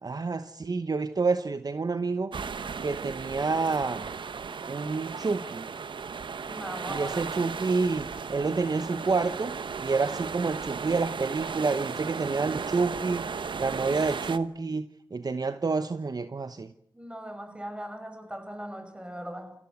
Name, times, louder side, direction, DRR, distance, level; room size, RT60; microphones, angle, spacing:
voice 1, 0.0-2.3 2.8-4.1 4.7-5.7 6.9-13.3 13.6-16.7, right 4 dB, 50° right, 1.0 m, -28 dB
sound 1, 2.3-14.4, right 5 dB, 75° right, 1.0 m, -35 dB
voice 2, 6.5-7.2 16.9-19.5, equal, 15° right, 5.7 m, -39 dB
28.5 x 16.5 x 8.1 m
cardioid pair, 45°, 8 cm